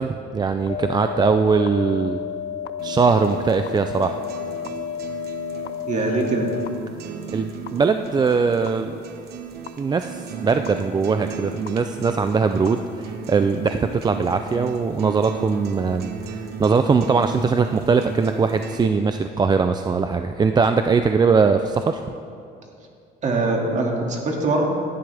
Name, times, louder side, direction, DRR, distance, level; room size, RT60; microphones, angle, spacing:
voice 1, 0.0-2.2 2.8-4.2 7.3-9.0 9.8-22.0, right 5 dB, 25° right, 8 dB, 0.4 m, -21 dB
sound 1, 0.7-6.7 7.7-7.8 8.7-8.8 9.7-9.8 10.7-10.8 11.7-11.8 12.7-12.8 13.7-13.8, left 9 dB, 80° left, 0.6 m, -31 dB
sound 2, 2.8-18.8, right 5 dB, 70° right, 1.2 m, -35 dB
voice 2, 5.9-6.5 23.2-24.6, right 2 dB, 45° right, 0 dB, 2.3 m, -22 dB
17.0 x 11.5 x 3.4 m, 2.5 s
cardioid pair, 110°, 17 cm